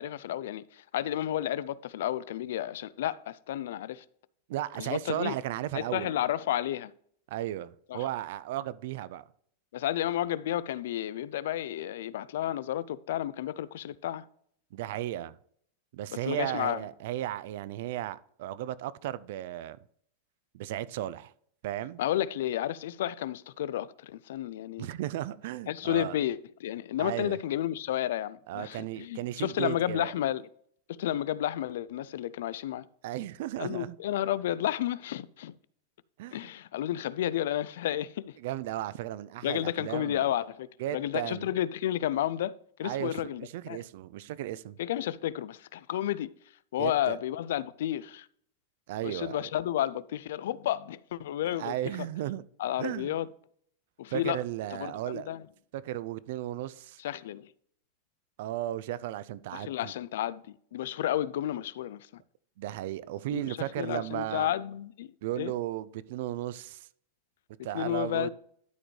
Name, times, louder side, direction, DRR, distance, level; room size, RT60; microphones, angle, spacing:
voice 1, 0.0-4.0 4.8-5.3 5.7-6.9 7.9-8.1 9.7-14.3 16.2-16.8 22.0-24.9 25.7-30.5 30.9-32.9 33.6-35.5 36.3-38.3 39.4-40.7 40.9-42.5 42.8-43.8 44.8-46.3 46.7-48.3 49.0-51.7 52.6-53.3 54.0-54.4 54.7-55.4 57.0-57.5 59.5-62.2 63.3-65.1 65.4-65.5 67.7-68.3, left 12 dB, 70° left, 0.4 m, -32 dB
voice 2, 4.5-6.2 7.3-9.2 14.7-15.4 15.9-19.8 20.5-21.3 21.6-22.0 24.8-26.2 27.0-27.4 28.5-30.1 33.0-34.0 36.2-36.5 38.4-40.3 40.8-41.5 42.8-44.8 46.8-47.2 48.9-49.5 51.6-52.4 52.8-53.1 54.1-55.3 55.7-57.0 58.4-59.9 62.6-64.5 65.2-66.9 67.6-68.3, right 13 dB, 55° right, 0.4 m, -35 dB
12.0 x 5.1 x 3.2 m
supercardioid pair, 170°, 0 cm